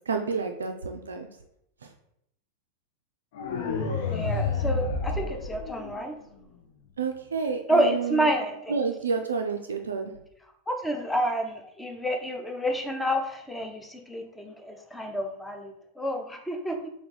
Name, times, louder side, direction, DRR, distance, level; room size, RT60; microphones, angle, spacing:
voice 1, 0.1-1.3 1.8-1.9 7.0-8.3 8.7-10.1, right 5 dB, 70° right, 4 dB, 0.3 m, -29 dB
sound 1, 3.3-6.3, left 3 dB, 55° left, 0.6 m, -29 dB
voice 2, 4.1-6.2 7.7-8.8 10.7-16.9, equal, 5° left, 4 dB, 0.6 m, -29 dB
3.5 x 3.1 x 3.8 m, 0.75 s
figure-of-eight pair, 90°, 0 cm